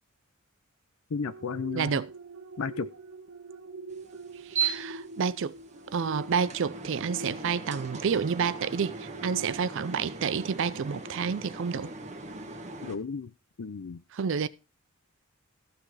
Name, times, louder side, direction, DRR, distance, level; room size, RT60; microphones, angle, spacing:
voice 1, 1.1-2.0 2.6-2.9 12.8-13.3 13.6-14.0, left 5 dB, 70° left, 0.5 m, -33 dB
sound 1, 1.2-11.1 11.6-11.8, right 2 dB, 75° right, 1.5 m, -45 dB
voice 2, 1.7-2.1 4.4-5.5 5.9-11.9 14.1-14.5, right 6 dB, 60° right, 0.4 m, -29 dB
sound 2, 3.9-13.0, right 5 dB, 30° right, 1.6 m, -38 dB
14.5 x 6.0 x 4.8 m
head